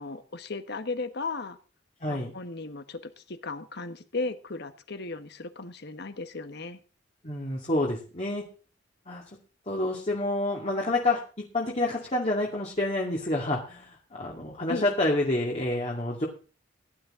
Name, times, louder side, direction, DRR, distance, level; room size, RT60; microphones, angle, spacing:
voice 1, 0.0-1.6 2.1-6.8 14.7-14.9, left 3 dB, 60° left, 10 dB, 1.4 m, -36 dB
voice 2, 2.0-2.3 7.2-8.4 9.1-9.2 9.7-11.2 11.5-16.3, left 2 dB, 35° left, -2 dB, 2.4 m, -28 dB
17.0 x 11.0 x 3.8 m, 0.37 s
head